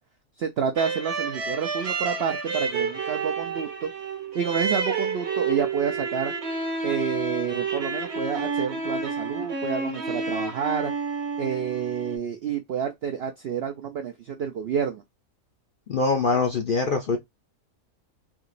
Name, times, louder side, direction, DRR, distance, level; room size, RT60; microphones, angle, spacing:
voice 1, 0.4-3.9 4.3-6.3 6.8-10.9 11.4-15.0, right 7 dB, 75° right, 0.6 m, -29 dB
sound 1, 0.8-12.2, right 4 dB, 50° right, 1.0 m, -30 dB
voice 2, 15.9-17.2, left 4 dB, 55° left, 0.6 m, -23 dB
3.6 x 2.8 x 2.5 m
omnidirectional pair, 1.6 m